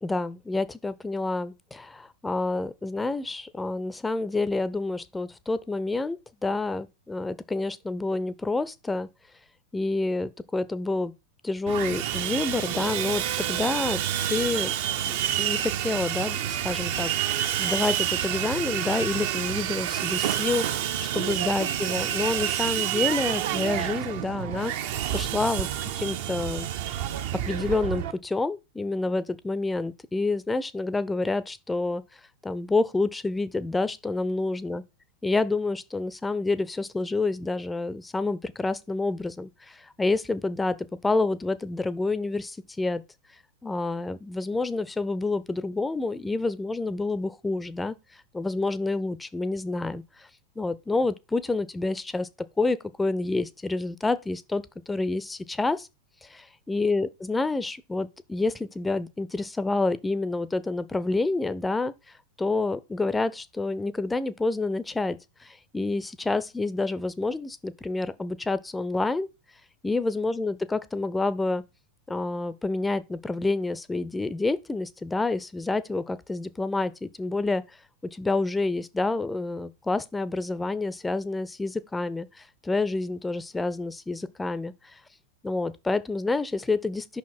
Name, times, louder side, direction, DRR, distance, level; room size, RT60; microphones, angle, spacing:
voice 1, 0.0-9.1 9.7-11.1 11.4-14.0 14.3-14.7 15.1-25.7 26.0-26.7 27.4-32.0 32.4-34.8 35.2-40.8 41.0-43.0 43.6-47.9 48.3-50.3 50.6-52.3 52.6-55.9 56.2-61.9 62.4-69.3 69.8-71.6 72.1-77.6 78.1-84.7 85.4-87.2, left 3 dB, 10° left, 0.4 m, -28 dB
Sawing, 11.7-28.1, right 11 dB, 50° right, 0.5 m, -28 dB
5.7 x 4.7 x 4.3 m
figure-of-eight pair, 90°, 0 cm